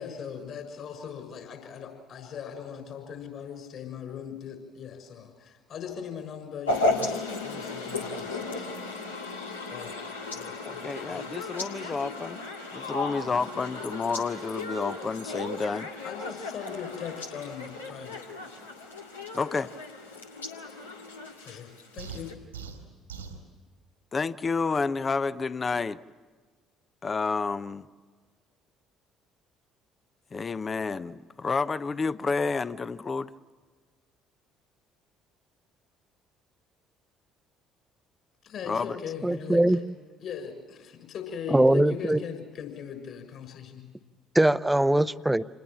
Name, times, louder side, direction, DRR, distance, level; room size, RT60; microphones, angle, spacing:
voice 1, 0.0-8.7 9.7-10.0 10.3-11.3 16.0-18.5 21.4-22.4 38.4-39.8 40.2-43.8, left 7 dB, 50° left, 7 dB, 6.4 m, -40 dB
sound 1, 6.7-22.3, left 2 dB, 80° left, 1.9 m, -35 dB
voice 2, 10.6-12.4 12.7-15.9 19.3-19.7 24.1-26.0 27.0-27.8 30.3-33.3 38.7-39.0, left 4 dB, 30° left, 16 dB, 0.8 m, -30 dB
sound 2, 22.0-23.4, right 6 dB, 80° right, 2.4 m, -41 dB
voice 3, 39.2-39.8 41.5-42.2 44.3-45.4, right 1 dB, 5° right, 15 dB, 0.8 m, -21 dB
27.5 x 20.5 x 7.4 m, 1.5 s
figure-of-eight pair, 50°, 0 cm